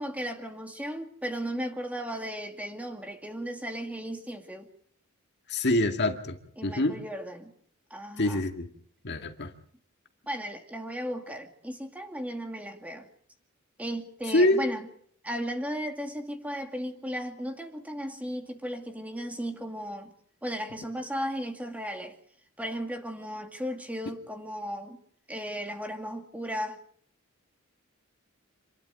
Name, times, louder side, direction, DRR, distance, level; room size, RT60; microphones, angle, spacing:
voice 1, 0.0-4.7 6.6-7.5 7.9-8.4 10.3-13.1 13.8-14.9 15.2-20.1 20.4-22.2 22.6-25.0 25.3-26.8, equal, 5° right, 2.3 m, -35 dB
voice 2, 5.5-7.0 8.2-8.7 9.0-9.5 14.3-14.6, left 1 dB, 55° left, 2.1 m, -25 dB
27.0 x 11.5 x 9.4 m
head